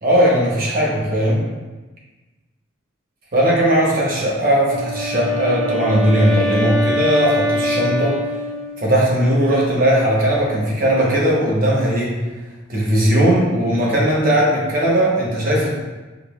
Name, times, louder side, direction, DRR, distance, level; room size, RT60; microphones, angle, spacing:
voice 1, 0.0-1.4 3.3-8.2 8.8-12.2 12.7-15.7, equal, 50° right, -4 dB, 0.9 m, -18 dB
Wind instrument woodwind instrument, 4.5-9.0, equal, 5° left, 0.7 m, -23 dB
4.9 x 2.4 x 2.3 m, 1.2 s
head